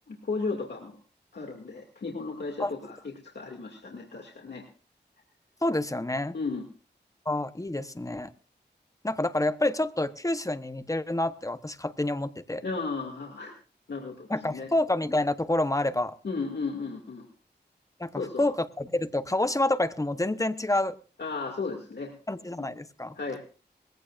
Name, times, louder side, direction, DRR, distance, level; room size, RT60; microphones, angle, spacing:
voice 1, 0.1-0.9 1.3-4.6 6.3-6.6 12.6-13.5 13.9-14.7 16.2-17.3 18.2-18.5 21.2-22.1 23.2-23.4, left 4 dB, 70° left, 1 dB, 2.4 m, -34 dB
voice 2, 5.6-6.3 7.3-8.3 9.0-12.6 14.3-16.1 18.0-20.9 22.3-23.1, left 1 dB, 20° left, 12 dB, 1.0 m, -28 dB
21.0 x 16.0 x 2.5 m, 0.37 s
wide cardioid pair, 65°, 18 cm